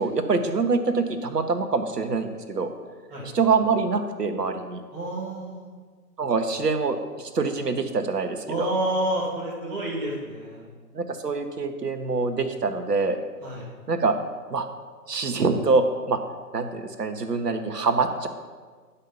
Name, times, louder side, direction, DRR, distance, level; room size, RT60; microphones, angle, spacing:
voice 1, 0.0-2.7 3.3-4.8 6.2-8.7 10.9-13.2 13.9-14.2 14.5-14.7 15.1-16.2 16.5-18.3, right 4 dB, 75° right, 7 dB, 1.2 m, -25 dB
voice 2, 4.9-5.7 8.5-10.6 13.4-13.7, right 1 dB, 5° right, -15 dB, 0.7 m, -29 dB
10.0 x 5.6 x 5.5 m, 1.5 s
figure-of-eight pair, 135°, 48 cm